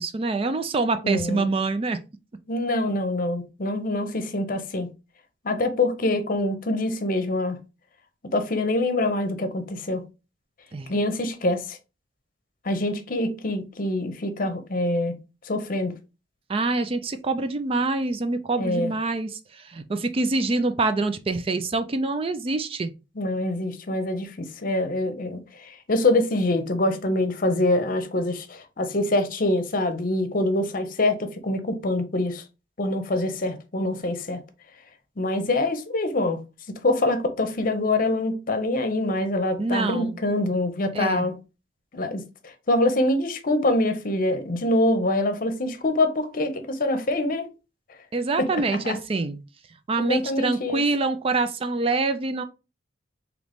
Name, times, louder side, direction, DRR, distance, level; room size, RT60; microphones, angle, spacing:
voice 1, 0.0-2.0 10.7-10.9 16.5-22.9 39.6-40.2 40.9-41.3 48.1-49.4 49.9-52.4, right 3 dB, 30° right, 0.4 m, -25 dB
voice 2, 1.0-1.5 2.5-4.9 5.4-7.6 8.3-10.0 10.9-11.8 12.6-15.2 15.4-15.9 18.6-18.9 23.2-32.4 32.8-34.4 35.2-36.4 36.7-41.3 41.9-47.5 48.4-49.0 50.0-50.8, left 2 dB, 50° left, 0.7 m, -25 dB
3.9 x 3.0 x 3.4 m
head